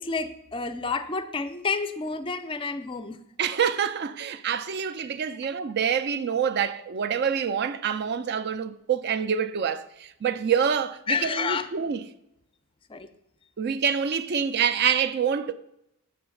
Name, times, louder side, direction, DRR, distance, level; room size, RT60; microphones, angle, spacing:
voice 1, 0.0-3.2 11.1-11.7 12.9-13.1, left 4 dB, 25° left, 0.4 m, -29 dB
voice 2, 3.4-12.0 13.6-15.5, right 7 dB, 50° right, 0.4 m, -26 dB
6.9 x 4.0 x 6.3 m
head